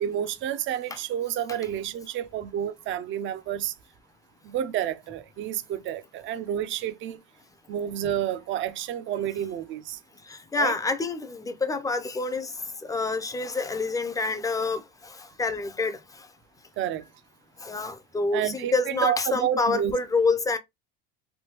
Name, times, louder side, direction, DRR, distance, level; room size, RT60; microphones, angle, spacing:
voice 1, 0.0-3.7 4.4-7.2 7.7-10.0 10.5-10.7 16.8-17.0 18.3-20.0, right 10 dB, 40° right, 0.5 m, -30 dB
voice 2, 10.3-16.3 17.6-20.6, left 3 dB, 10° left, 0.5 m, -27 dB
3.5 x 2.2 x 2.9 m
supercardioid pair, 105°, 30 cm